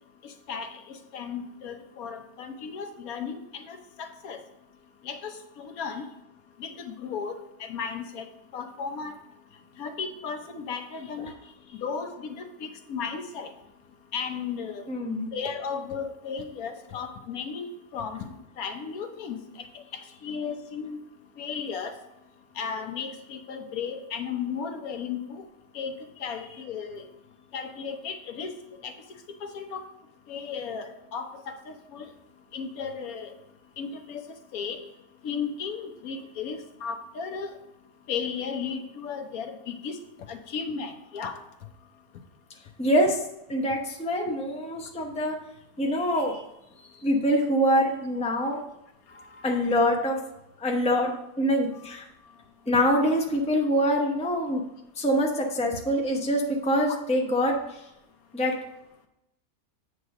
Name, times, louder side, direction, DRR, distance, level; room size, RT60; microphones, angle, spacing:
voice 1, 0.2-4.4 5.0-6.0 6.6-8.3 8.5-9.2 9.8-11.3 11.8-13.5 14.1-14.9 15.3-17.7 17.9-18.3 18.6-21.0 21.4-22.0 22.6-25.4 25.7-25.9 26.2-27.1 27.5-28.5 28.8-28.9 29.4-29.8 30.3-32.1 32.5-33.3 33.8-34.8 35.2-37.5 38.1-40.0 40.3-41.4 49.1-49.7 51.8-51.9 56.9-57.0, left 6 dB, 75° left, 6 dB, 1.2 m, -35 dB
voice 2, 14.9-15.3 42.8-43.2 43.5-45.4 45.8-46.4 47.0-48.6 49.4-50.2 50.6-52.0 52.7-54.6 55.0-57.8 58.3-58.6, equal, 5° left, 1 dB, 0.6 m, -25 dB
7.9 x 3.2 x 6.4 m, 0.87 s
omnidirectional pair, 1.5 m